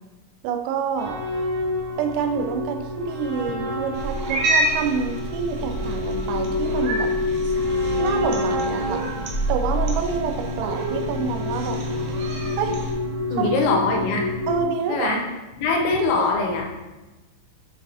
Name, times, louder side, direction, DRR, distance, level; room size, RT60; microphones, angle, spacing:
voice 1, 0.4-1.2 2.0-7.1 8.0-9.1 9.5-11.8 12.6-12.8 13.3-13.5 14.5-15.2 16.0-16.1, right 6 dB, 90° right, 5 dB, 3.2 m, -27 dB
sound 1, 1.0-14.6, left 2 dB, 50° right, 1.7 m, -28 dB
Cat, 3.9-12.9, right 2 dB, 75° right, 2.5 m, -28 dB
voice 2, 13.3-14.2 14.9-15.2 15.6-16.7, left 3 dB, 85° left, 1 dB, 3.2 m, -22 dB
10.0 x 4.0 x 2.6 m, 1.1 s
omnidirectional pair, 5.8 m